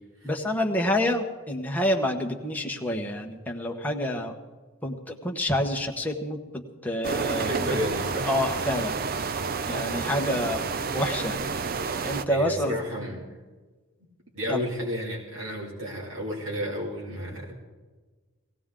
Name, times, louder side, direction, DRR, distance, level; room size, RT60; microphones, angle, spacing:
voice 1, 0.2-4.3 4.8-7.7 8.2-8.9 9.6-10.6 10.9-11.4 12.0-12.7 14.5-14.6, left 1 dB, 10° left, 1 dB, 1.2 m, -28 dB
sound 1, 7.0-12.2, right 5 dB, 45° right, 0.5 m, -30 dB
voice 2, 7.4-8.3 12.3-13.2 14.3-17.5, equal, 65° right, -4 dB, 2.6 m, -32 dB
19.0 x 16.5 x 3.8 m, 1.3 s
head